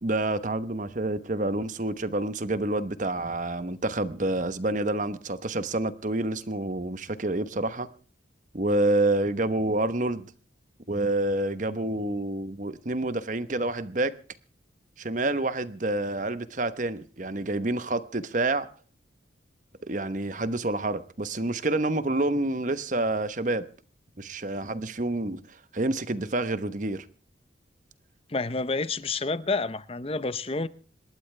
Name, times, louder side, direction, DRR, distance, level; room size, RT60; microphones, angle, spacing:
voice 1, 0.0-7.9 8.5-10.3 10.9-14.1 15.0-18.7 19.8-23.6 24.2-25.4 25.7-27.0, right 2 dB, 40° right, 1.0 m, -28 dB
voice 2, 28.3-30.7, left 3 dB, 30° left, 0.8 m, -29 dB
27.0 x 12.5 x 3.3 m
head